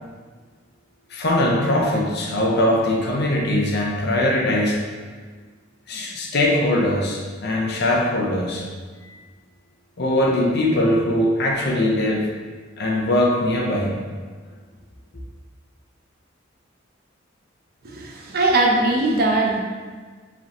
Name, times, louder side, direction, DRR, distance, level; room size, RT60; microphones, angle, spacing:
voice 1, 1.1-4.8 5.9-8.6 10.0-12.3 12.8-14.0, left 1 dB, 55° left, -1 dB, 0.7 m, -21 dB
voice 2, 17.8-19.6, right 2 dB, 50° right, 0 dB, 0.7 m, -20 dB
4.9 x 3.3 x 2.9 m, 1.5 s
head